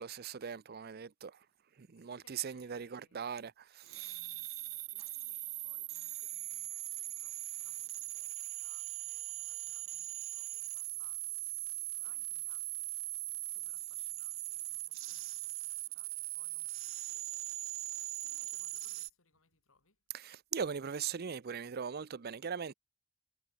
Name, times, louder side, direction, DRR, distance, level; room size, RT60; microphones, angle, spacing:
voice 1, 0.0-1.4 1.8-4.2 20.1-22.7, right 7 dB, 50° right, 0.5 m, -40 dB
voice 2, 2.0-3.2 4.0-20.0, left 3 dB, 85° left, 6.6 m, -71 dB
sound 1, 3.9-19.1, right 17 dB, 80° right, 1.0 m, -40 dB
head